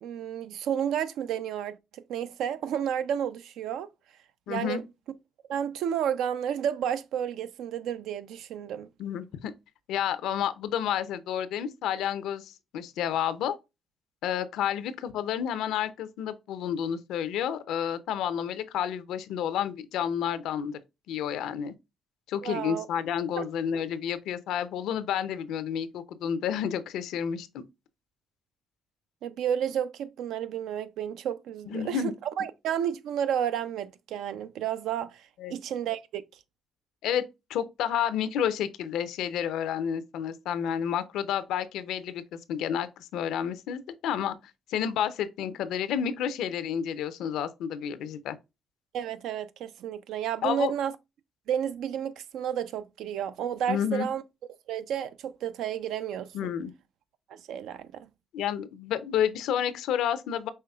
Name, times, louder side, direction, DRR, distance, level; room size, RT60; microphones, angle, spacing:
voice 1, 0.0-3.9 4.5-4.8 5.5-8.9 22.4-22.9 23.4-23.5 29.2-36.2 48.9-50.9 51.5-54.2 54.7-56.5 57.3-58.1, right 9 dB, 80° right, 0.4 m, -31 dB
voice 2, 4.5-4.8 9.0-9.5 9.9-13.6 14.2-20.8 21.1-21.7 22.3-27.6 31.7-32.1 35.4-35.5 37.0-37.2 37.5-44.4 44.7-48.4 50.4-50.7 53.7-54.1 56.3-56.7 58.3-60.5, left 9 dB, 85° left, 0.5 m, -30 dB
5.6 x 3.3 x 2.3 m
cardioid pair, 100°, 0 cm